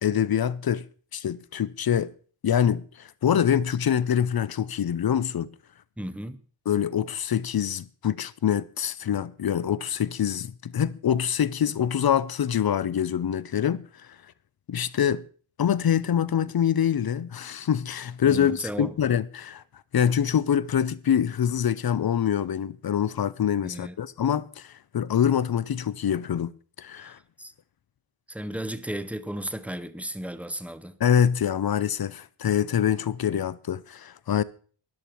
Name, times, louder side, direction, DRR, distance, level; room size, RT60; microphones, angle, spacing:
voice 1, 0.0-0.8 1.1-2.1 2.4-5.5 6.7-13.8 14.7-15.2 15.6-19.6 19.9-26.5 26.8-27.2 31.0-34.4, left 9 dB, 50° left, 0.6 m, -25 dB
voice 2, 6.0-6.4 18.2-19.0 23.6-24.0 27.0-27.5 28.3-31.0, right 1 dB, 5° right, 0.8 m, -35 dB
14.0 x 11.0 x 4.5 m
wide cardioid pair, 125°, 47 cm